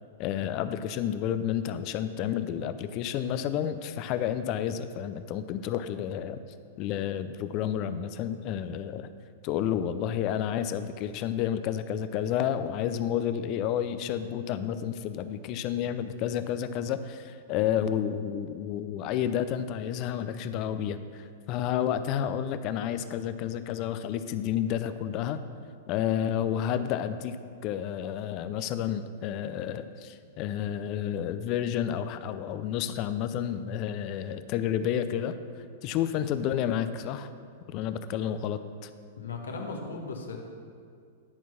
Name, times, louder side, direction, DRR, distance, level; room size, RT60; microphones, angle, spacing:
voice 1, 0.2-6.4 6.8-9.1 9.4-25.4 25.9-27.4 27.6-35.3 35.8-37.3 37.7-38.9, left 9 dB, 45° left, 11 dB, 0.5 m, -30 dB
voice 2, 39.2-40.4, left 3 dB, 80° left, 2 dB, 1.3 m, -37 dB
10.5 x 4.6 x 5.9 m, 2.3 s
hypercardioid pair, 105°, 0 cm